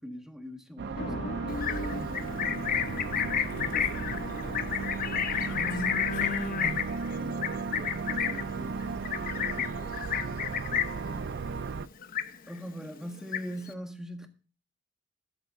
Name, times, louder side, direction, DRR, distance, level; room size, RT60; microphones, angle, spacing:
voice 1, 0.0-2.1 7.1-8.9 12.5-14.3, equal, 5° right, 1.6 m, -43 dB
sound 1, 0.8-11.9, right 4 dB, 60° right, 0.4 m, -35 dB
sound 2, 0.9-6.5, left 1 dB, 70° left, 2.4 m, -39 dB
Livestock farm animals working animals, 1.5-11.1 11.4-11.8 12.0-12.7 13.0-13.7, left 8 dB, 45° left, 0.9 m, -31 dB
voice 2, 3.0-3.3 3.6-7.0 9.7-10.2 10.6-11.3, left 2 dB, 85° left, 2.3 m, -48 dB
13.5 x 11.5 x 2.6 m
head